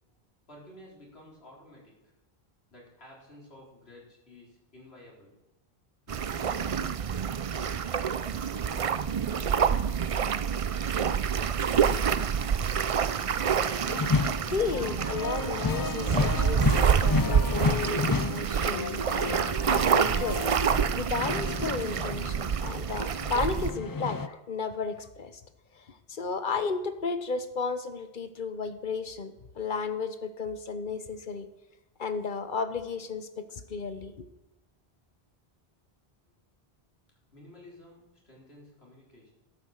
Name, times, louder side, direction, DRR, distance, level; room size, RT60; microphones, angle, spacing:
voice 1, 0.5-2.1 2.7-5.4 6.1-7.5 8.1-10.0 37.3-39.3, left 1 dB, 80° left, -3 dB, 4.3 m, -53 dB
sound 1, 6.1-23.7, right 7 dB, 45° right, 0.4 m, -27 dB
sound 2, 13.9-22.6 23.0-24.3, left 4 dB, 35° left, 0.3 m, -31 dB
voice 2, 14.4-19.0 19.3-25.4 25.8-31.5 32.0-34.3, left 5 dB, 55° left, 10 dB, 1.1 m, -34 dB
12.5 x 9.2 x 6.5 m, 0.96 s
omnidirectional pair, 1.1 m